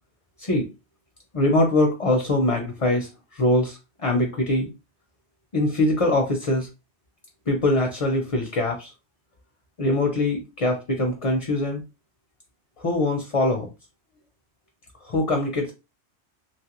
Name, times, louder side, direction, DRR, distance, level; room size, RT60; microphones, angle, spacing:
voice 1, 1.3-4.7 5.5-6.7 7.5-8.9 9.8-11.8 12.8-13.7 15.0-15.7, left 2 dB, 40° left, 2 dB, 0.5 m, -23 dB
3.0 x 2.3 x 2.9 m, 0.26 s
omnidirectional pair, 1.1 m